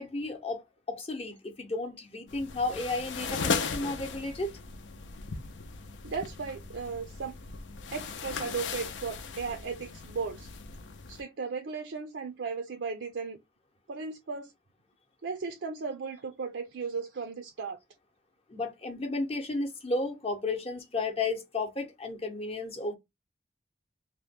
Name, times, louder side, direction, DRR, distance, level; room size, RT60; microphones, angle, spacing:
voice 1, 0.0-4.5 18.5-22.9, left 2 dB, 30° left, 0.7 m, -33 dB
sound 1, 2.3-11.2, left 5 dB, 80° left, 0.5 m, -37 dB
voice 2, 6.0-7.3 7.9-10.5 11.1-13.4 13.9-14.5 15.2-17.8, right 5 dB, 80° right, 0.5 m, -36 dB
2.8 x 2.1 x 3.2 m
head